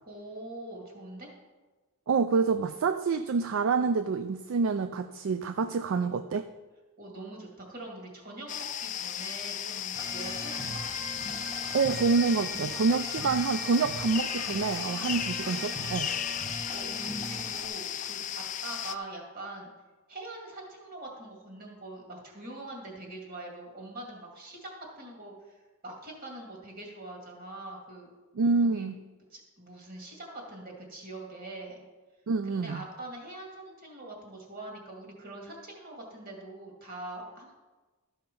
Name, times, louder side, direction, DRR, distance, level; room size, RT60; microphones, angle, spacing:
voice 1, 0.1-1.3 7.0-10.8 16.7-18.2 18.6-19.7 20.1-28.1 28.6-28.9 29.3-31.8 32.4-37.5, right 2 dB, 40° right, 0 dB, 2.4 m, -43 dB
voice 2, 2.1-6.5 11.7-16.1 28.4-29.0 32.3-32.8, right 4 dB, 60° right, 10 dB, 0.4 m, -27 dB
sound 1, 8.5-19.0, left 10 dB, 35° left, 0.4 m, -35 dB
sound 2, 9.9-17.7, right 1 dB, 15° right, 1.2 m, -40 dB
13.0 x 5.7 x 5.3 m, 1.2 s
head